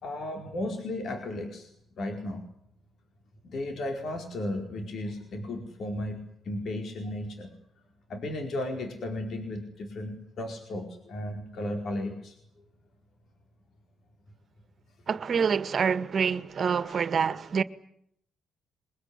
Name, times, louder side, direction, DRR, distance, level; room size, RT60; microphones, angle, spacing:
voice 1, 0.0-2.4 3.4-7.5 8.1-12.4 16.8-17.0, left 1 dB, 60° left, 4.7 m, -35 dB
voice 2, 15.1-17.6, right 6 dB, 50° right, 1.8 m, -26 dB
23.0 x 21.0 x 9.9 m
cardioid pair, 90°, 0 cm